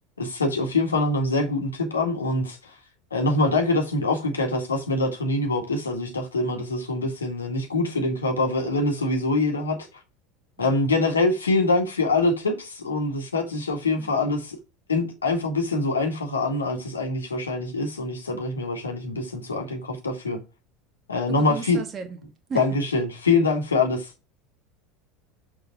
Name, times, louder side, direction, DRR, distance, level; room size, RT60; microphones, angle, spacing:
voice 1, 0.2-2.8 3.1-9.8 10.6-14.6 14.9-20.4 21.1-21.8 22.5-24.1, left 2 dB, 80° left, 2.0 m, -24 dB
voice 2, 21.3-22.2 22.5-22.6, right 5 dB, 30° right, 1.7 m, -35 dB
6.6 x 4.4 x 5.9 m
figure-of-eight pair, 75°, 0 cm